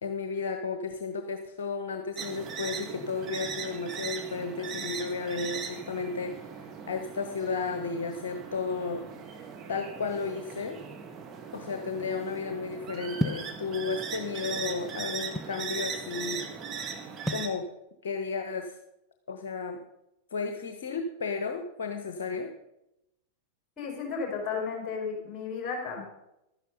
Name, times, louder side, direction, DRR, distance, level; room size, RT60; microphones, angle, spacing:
voice 1, 0.0-9.1 9.7-10.8 11.5-16.5 17.3-17.6 18.0-18.8 19.3-19.8 20.3-22.5, left 4 dB, 60° left, 6 dB, 1.0 m, -33 dB
sound 1, 2.2-17.5, right 6 dB, 25° right, 1.7 m, -39 dB
sound 2, 13.2-13.5 14.4-15.6 17.3-17.5, left 1 dB, 5° left, 0.6 m, -32 dB
voice 2, 23.8-26.0, left 5 dB, 30° left, 0 dB, 5.0 m, -33 dB
12.0 x 9.9 x 5.4 m, 0.88 s
figure-of-eight pair, 90°, 0 cm